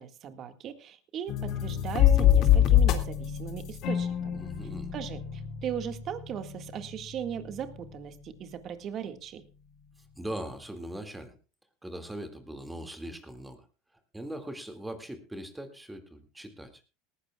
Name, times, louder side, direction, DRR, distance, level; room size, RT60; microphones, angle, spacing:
voice 1, 0.0-4.4 4.9-9.4, right 9 dB, 40° right, 8 dB, 1.8 m, -38 dB
sound 1, 1.3-8.1, left 10 dB, 50° left, 2.2 m, -26 dB
voice 2, 4.4-4.9 10.2-11.3 11.8-13.6 14.1-16.7, right 1 dB, 5° right, 6 dB, 2.1 m, -40 dB
19.0 x 15.0 x 2.3 m, 0.32 s
supercardioid pair, 110°, 0 cm